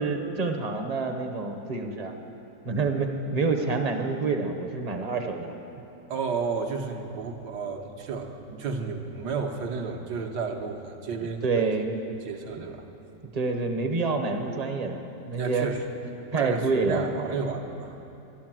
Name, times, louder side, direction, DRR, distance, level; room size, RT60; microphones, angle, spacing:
voice 1, 0.0-2.1 2.6-5.6 11.4-11.9 13.3-15.0 15.3-15.7 16.3-17.3, right 4 dB, 35° right, 5 dB, 0.7 m, -27 dB
voice 2, 6.1-11.7 12.2-12.9 15.4-15.8 16.2-18.0, right 5 dB, 80° right, 3 dB, 1.7 m, -32 dB
12.5 x 11.5 x 7.5 m, 2.8 s
omnidirectional pair, 1.8 m